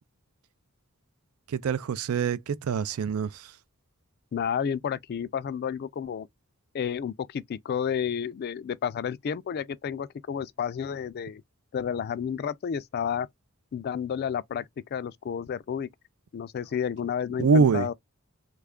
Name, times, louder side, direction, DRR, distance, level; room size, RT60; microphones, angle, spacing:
voice 1, 1.5-3.3 17.4-17.9, right 5 dB, 85° right, 0.4 m, -24 dB
voice 2, 4.3-6.3 6.7-11.4 11.7-13.3 13.7-15.9 16.3-17.9, left 7 dB, 50° left, 0.3 m, -31 dB
3.1 x 2.3 x 3.5 m
head